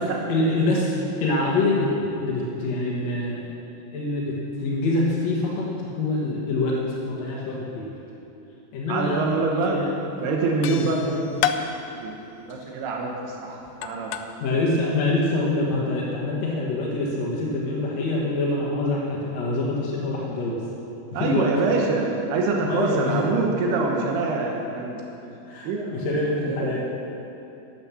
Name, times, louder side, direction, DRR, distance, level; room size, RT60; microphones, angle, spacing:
voice 1, 0.3-3.5 3.9-7.9 8.7-9.3 9.6-9.9 10.6-10.9 14.4-20.6 21.1-21.5 22.6-23.2 25.5-26.8, left 2 dB, 60° left, -4 dB, 2.0 m, -25 dB
voice 2, 8.9-9.8 10.2-11.5 12.0-12.1 12.5-14.1 21.1-25.0 25.6-26.0 26.5-26.8, right 3 dB, 85° right, 0 dB, 3.2 m, -25 dB
sound 1, 9.2-9.7 9.9-10.3 10.6-14.4, left 10 dB, 90° left, 2.0 m, -30 dB
12.0 x 8.8 x 7.0 m, 2.9 s
omnidirectional pair, 4.5 m